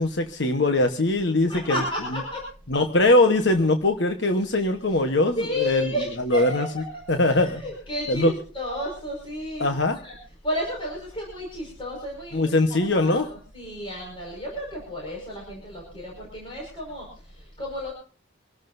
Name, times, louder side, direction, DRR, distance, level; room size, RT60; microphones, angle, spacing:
voice 1, 0.0-1.8 2.7-5.9 6.2-6.7 7.1-7.6 8.1-8.3 9.6-10.0 12.3-13.3, left 2 dB, 65° left, 5 dB, 1.2 m, -21 dB
voice 2, 1.5-2.4 4.5-5.0 5.4-6.8 7.3-9.7 10.0-10.1 10.4-12.6 12.8-17.9, left 1 dB, 25° left, -2 dB, 5.5 m, -32 dB
26.0 x 13.5 x 2.7 m, 0.38 s
head